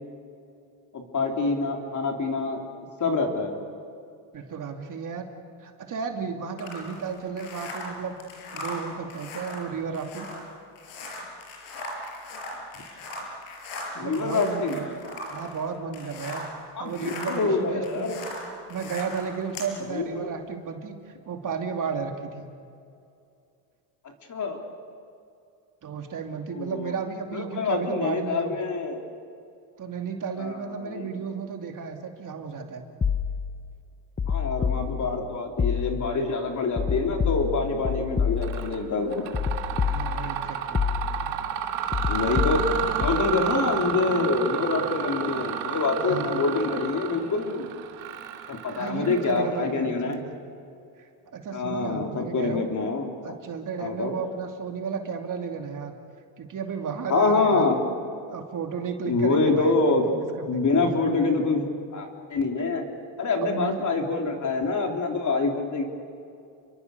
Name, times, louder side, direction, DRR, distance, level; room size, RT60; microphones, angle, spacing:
voice 1, 0.9-2.6 3.0-3.6 14.0-14.8 16.8-18.2 19.9-20.3 24.3-24.6 26.5-26.9 27.3-29.0 30.4-31.0 34.3-39.3 42.1-42.6 43.0-47.7 48.5-50.2 51.5-53.1 53.8-54.1 57.1-57.8 59.1-60.0 60.5-62.8 63.2-65.8, left 3 dB, 40° left, 2 dB, 3.8 m, -26 dB
voice 2, 4.3-5.2 5.6-8.2 8.5-10.3 13.9-14.9 15.1-16.4 16.8-18.1 18.7-22.5 25.8-28.7 29.8-32.9 39.9-40.8 46.0-46.4 48.7-50.3 51.0-52.6 53.2-56.0 56.4-57.7 58.3-59.8 60.1-60.9 63.4-63.8, right 6 dB, 40° right, 4 dB, 2.7 m, -33 dB
sound 1, 6.6-16.6 16.9-19.7, left 2 dB, 85° left, 5.7 m, -39 dB
sound 2, 33.0-33.6 34.2-35.2 35.6-36.2 36.8-38.8 39.3-40.4 40.7-41.4 41.9-43.3, left 6 dB, 20° left, 0.9 m, -28 dB
Mechanisms, 38.4-38.8 39.1-49.7, right 9 dB, 90° right, 2.5 m, -31 dB
29.5 x 23.5 x 6.8 m, 2.5 s
cardioid pair, 115°, 47 cm